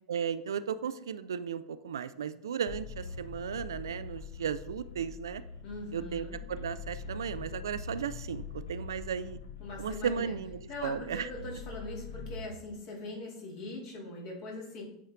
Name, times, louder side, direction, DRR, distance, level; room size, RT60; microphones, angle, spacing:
voice 1, 0.1-5.4 5.9-9.4 9.8-11.3, right 7 dB, 70° right, 14 dB, 0.3 m, -35 dB
sound 1, 2.7-12.5, left 5 dB, 70° left, 0.7 m, -43 dB
voice 2, 5.6-6.4 9.6-10.3 10.7-14.8, left 2 dB, 50° left, -1 dB, 2.4 m, -41 dB
8.4 x 4.2 x 3.6 m, 0.77 s
figure-of-eight pair, 85°, 2 cm